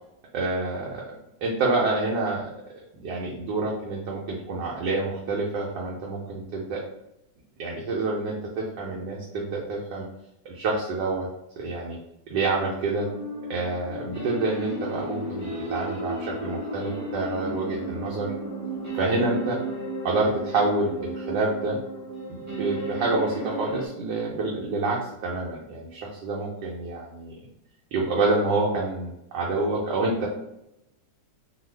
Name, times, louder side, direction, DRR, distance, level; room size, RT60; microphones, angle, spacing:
voice 1, 0.3-2.5 2.9-6.8 7.6-10.1 10.4-11.3 11.6-12.0 12.3-13.1 13.5-18.3 18.9-19.6 20.0-21.8 22.3-27.3 27.9-30.3, right 3 dB, 80° right, -3 dB, 1.2 m, -27 dB
sound 1, 12.9-23.9, right 1 dB, 20° right, 0.4 m, -34 dB
2.7 x 2.5 x 3.1 m, 0.84 s
omnidirectional pair, 1.9 m